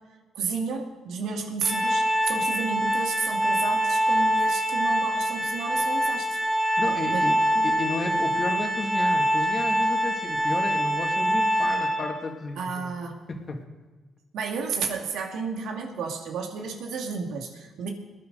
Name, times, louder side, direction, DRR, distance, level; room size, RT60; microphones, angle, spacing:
voice 1, 0.3-6.4 7.1-7.6 12.6-13.2 14.3-17.9, right 5 dB, 80° right, 2 dB, 2.2 m, -32 dB
Organ, 1.6-12.3, equal, 5° left, 2.7 m, -24 dB
voice 2, 6.8-12.9 13.3-13.6, left 3 dB, 40° left, 2 dB, 2.4 m, -32 dB
21.5 x 9.4 x 4.0 m, 1.3 s
cardioid pair, 90°, 0 cm